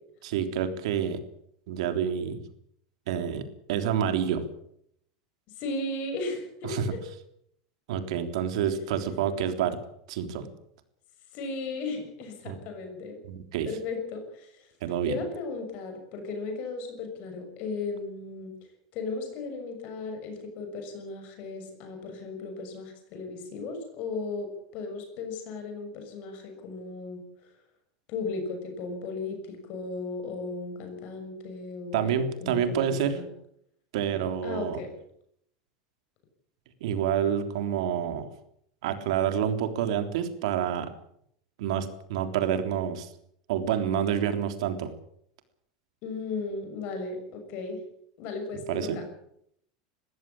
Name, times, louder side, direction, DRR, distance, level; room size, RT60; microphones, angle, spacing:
voice 1, 0.2-1.2 1.7-2.4 3.1-4.4 6.6-6.9 7.9-9.8 10.1-10.5 12.4-12.6 13.3-13.7 14.8-15.2 31.9-33.2 33.9-34.8 36.8-38.3 38.8-40.9 41.6-43.1 43.5-44.9 48.7-49.0, right 9 dB, 80° right, 8 dB, 3.5 m, -28 dB
voice 2, 5.6-7.0 11.3-13.2 13.6-14.7 15.0-18.6 18.9-27.2 28.1-33.3 34.4-34.9 46.0-47.8 48.2-49.0, left 3 dB, 50° left, 5 dB, 6.6 m, -36 dB
21.5 x 15.5 x 8.8 m, 0.71 s
supercardioid pair, 145°, 3 cm